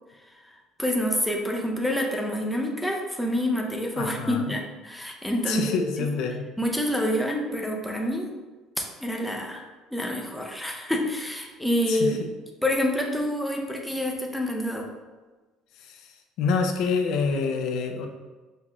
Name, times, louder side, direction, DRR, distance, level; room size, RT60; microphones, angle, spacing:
voice 1, 0.5-6.1 6.6-8.3 8.8-12.2 12.6-14.9, equal, ahead, 0 dB, 0.4 m, -27 dB
voice 2, 4.0-4.5 5.5-6.4 11.9-12.3 15.8-16.1 16.4-18.1, left 5 dB, 60° left, 4 dB, 0.4 m, -27 dB
5.6 x 2.4 x 3.0 m, 1.3 s
cardioid pair, 165°, 0 cm